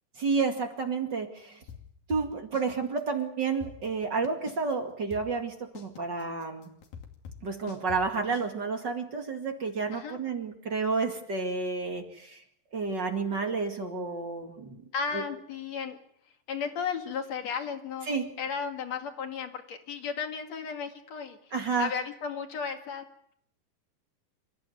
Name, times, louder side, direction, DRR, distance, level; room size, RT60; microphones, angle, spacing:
voice 1, 0.2-1.6 2.1-6.7 7.4-12.4 12.7-14.8 15.1-15.2 18.1-18.3 21.5-21.9, right 4 dB, 35° right, 4 dB, 2.5 m, -30 dB
sound 1, 1.7-2.7 3.0-3.1 3.4-4.7 5.1-8.5, left 7 dB, 85° left, 4.3 m, -45 dB
voice 2, 14.9-16.0 16.5-21.4 21.8-23.1, left 6 dB, 55° left, 5 dB, 3.2 m, -34 dB
27.5 x 15.0 x 9.4 m, 0.72 s
omnidirectional pair, 4.0 m